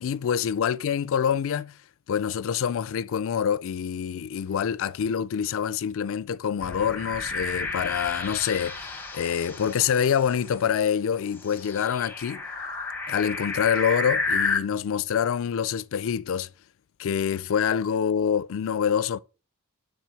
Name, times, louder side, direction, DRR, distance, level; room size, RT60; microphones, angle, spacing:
voice 1, 0.0-1.8 2.1-12.4 13.1-16.5 17.0-19.2, left 8 dB, 60° left, 0.4 m, -26 dB
sound 1, 6.6-10.5 11.4-14.6, left 3 dB, 10° left, 0.8 m, -31 dB
9.5 x 3.9 x 4.7 m
head